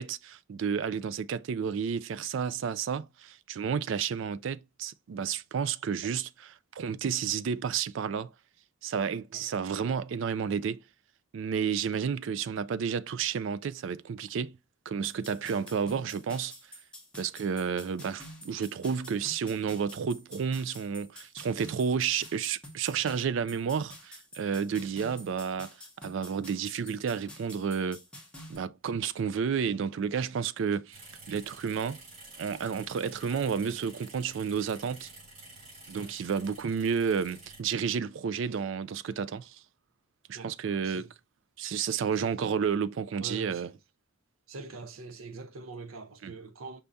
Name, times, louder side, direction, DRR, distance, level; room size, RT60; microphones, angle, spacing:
voice 1, 0.0-6.3 6.7-8.3 8.8-10.8 11.3-14.6 14.9-16.5 17.1-28.0 28.5-32.0 32.4-35.1 35.9-39.6 40.3-41.1 41.6-43.7 46.2-46.3, right 6 dB, 65° right, 0.3 m, -31 dB
sound 1, 15.0-28.6, left 1 dB, 5° left, 1.3 m, -49 dB
sound 2, 30.9-37.6, right 2 dB, 35° right, 3.4 m, -50 dB
voice 2, 43.2-43.7 44.5-46.8, right 3 dB, 90° right, 0.7 m, -43 dB
5.6 x 3.4 x 2.6 m
head